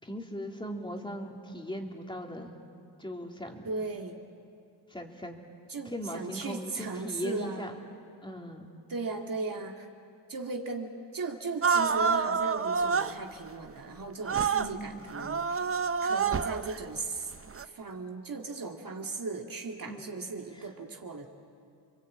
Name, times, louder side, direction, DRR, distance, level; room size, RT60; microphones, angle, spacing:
voice 1, 0.0-2.6 3.0-3.7 4.9-5.4 5.8-7.8 8.2-8.7 14.6-15.1 19.9-20.3 20.5-20.7, equal, 10° left, 1 dB, 3.0 m, -39 dB
voice 2, 3.6-4.2 5.7-7.7 8.9-9.9 10.3-15.7 16.0-17.3 17.6-21.3, right 3 dB, 45° right, 2 dB, 2.3 m, -37 dB
sound 1, 11.6-13.1 14.3-14.7 15.1-16.8 17.5-17.6, right 5 dB, 30° right, 0.8 m, -27 dB
29.0 x 22.0 x 8.7 m, 2.4 s
cardioid pair, 90°, 46 cm